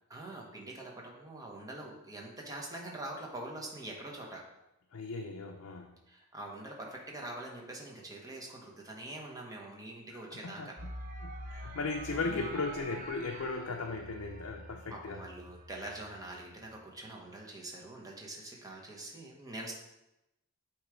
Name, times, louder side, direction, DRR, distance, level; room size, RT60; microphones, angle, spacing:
voice 1, 0.1-4.4 6.1-10.7 12.2-12.6 14.9-19.7, right 1 dB, 15° right, -2 dB, 1.1 m, -44 dB
voice 2, 4.9-6.0 10.3-10.9 11.2-15.2, left 3 dB, 65° left, 2 dB, 0.6 m, -37 dB
sound 1, 10.8-16.7, right 2 dB, 35° right, 0.8 m, -46 dB
8.1 x 3.2 x 4.9 m, 0.93 s
head